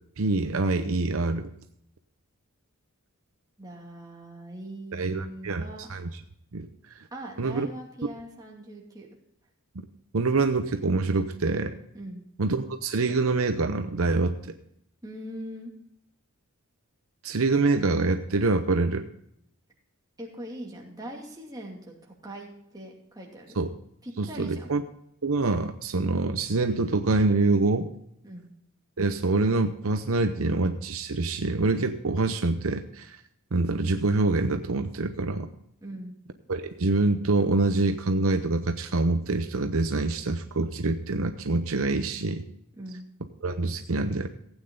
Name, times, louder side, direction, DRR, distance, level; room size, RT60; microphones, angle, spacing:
voice 1, 0.2-1.5 4.9-5.6 5.9-6.1 6.5-6.7 7.4-7.7 10.1-11.8 12.4-14.4 17.2-19.1 23.6-23.7 24.2-24.8 25.2-27.9 29.0-33.2 33.5-35.5 36.5-42.4 43.4-44.3, right 3 dB, 65° right, 7 dB, 0.8 m, -25 dB
voice 2, 3.6-5.9 7.1-9.1 11.9-12.2 15.0-15.7 20.2-23.6 24.0-24.7 28.2-28.5 35.8-36.2 42.8-43.0, right 1 dB, 15° right, -2 dB, 2.5 m, -41 dB
16.0 x 9.0 x 3.9 m, 0.74 s
head